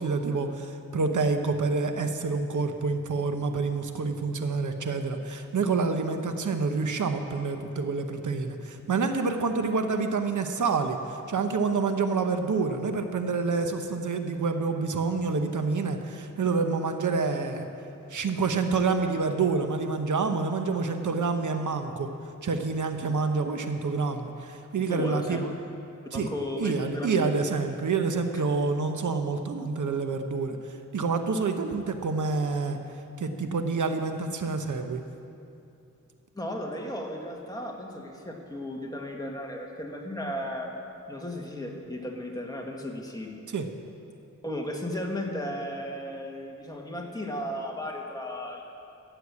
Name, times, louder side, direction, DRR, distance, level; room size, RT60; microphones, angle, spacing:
voice 1, 0.0-17.7 18.1-22.1 22.4-25.5 26.1-26.3 26.6-30.6 30.9-32.8 33.2-35.0 43.5-43.7, right 4 dB, 65° right, 6 dB, 0.9 m, -27 dB
voice 2, 24.9-25.4 26.1-27.3 36.3-40.7 41.1-43.3 44.4-48.7, left 1 dB, 10° left, -1 dB, 1.9 m, -35 dB
14.5 x 8.0 x 8.4 m, 2.7 s
wide cardioid pair, 100°, 32 cm